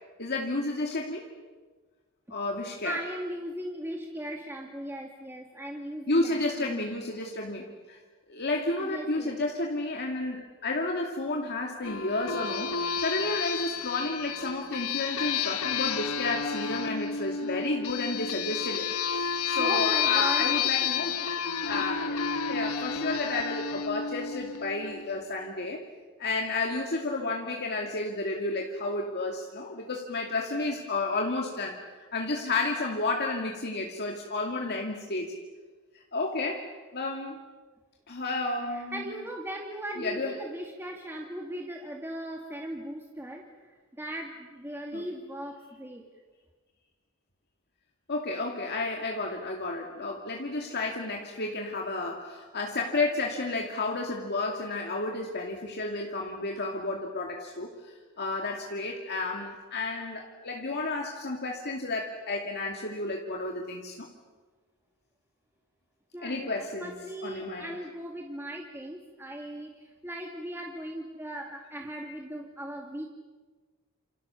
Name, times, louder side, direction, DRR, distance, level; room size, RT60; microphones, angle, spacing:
voice 1, 0.2-1.3 2.3-3.0 6.1-8.0 8.3-21.2 21.7-25.8 26.2-35.4 36.1-36.7 36.9-37.4 38.1-39.0 40.0-40.4 44.9-45.0 48.1-64.1 66.2-66.9 67.2-67.8, left 2 dB, 50° left, 1 dB, 2.5 m, -32 dB
voice 2, 2.8-7.0 8.8-9.4 19.6-20.7 38.7-46.0 66.1-73.1, right 1 dB, 10° right, 0 dB, 2.3 m, -38 dB
sound 1, 11.8-25.0, left 6 dB, 85° left, 1.2 m, -30 dB
28.5 x 28.0 x 7.1 m, 1.4 s
head